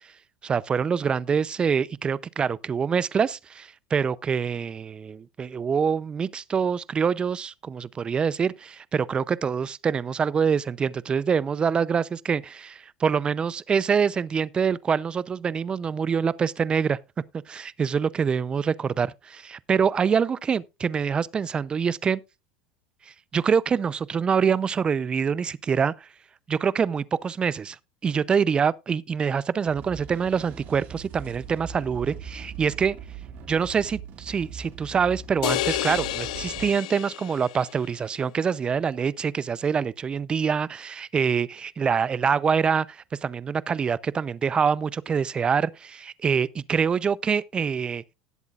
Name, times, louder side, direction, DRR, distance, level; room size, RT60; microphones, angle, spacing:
voice 1, 0.4-17.0 17.5-22.2 23.1-26.1 26.5-33.0 33.5-48.0, right 6 dB, 25° right, 0.5 m, -25 dB
sound 1, 29.7-36.7, right 7 dB, 50° right, 2.2 m, -41 dB
sound 2, 35.4-37.8, left 16 dB, 85° left, 0.5 m, -30 dB
18.5 x 8.0 x 2.4 m
supercardioid pair, 115°, 4 cm